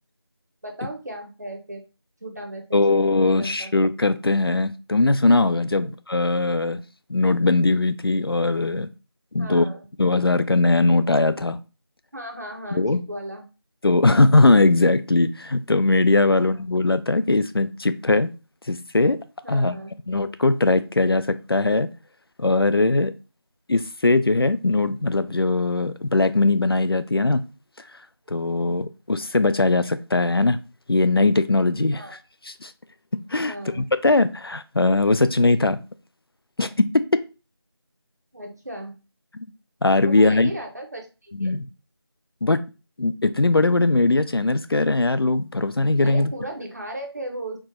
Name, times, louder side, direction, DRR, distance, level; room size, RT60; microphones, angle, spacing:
voice 1, 0.6-1.8 2.2-2.8 3.2-3.7 5.7-5.9 9.4-9.9 12.1-13.4 16.3-16.6 19.4-19.9 31.9-32.2 33.4-33.9 38.3-39.0 40.0-41.6 46.0-47.6, right 1 dB, 40° right, 3 dB, 0.9 m, -36 dB
voice 2, 2.7-6.8 7.1-8.9 9.3-9.7 10.0-11.6 12.7-13.0 13.8-18.3 18.7-19.2 19.5-19.8 20.1-21.9 22.4-23.1 23.7-27.4 28.3-30.6 30.9-32.0 32.6-32.7 33.3-35.8 36.6-37.0 39.8-40.5 41.4-41.7 42.4-42.6 43.0-46.3, left 2 dB, 65° left, 12 dB, 0.4 m, -20 dB
4.4 x 2.1 x 4.3 m, 0.31 s
figure-of-eight pair, 175°, 14 cm